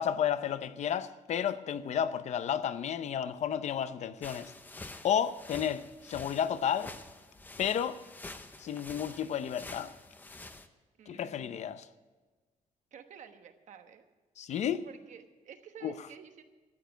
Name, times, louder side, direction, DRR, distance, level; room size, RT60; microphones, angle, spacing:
voice 1, 0.0-4.5 5.0-6.9 7.6-8.0 8.6-9.9 11.1-11.9 14.4-14.9 15.8-15.9, left 9 dB, 55° left, 0.6 m, -32 dB
sound 1, 4.2-10.7, left 2 dB, 15° left, 0.6 m, -48 dB
voice 2, 11.0-11.8 12.9-14.1 14.8-16.4, right 7 dB, 60° right, 1.2 m, -51 dB
13.5 x 9.3 x 9.1 m
wide cardioid pair, 180°, 14 cm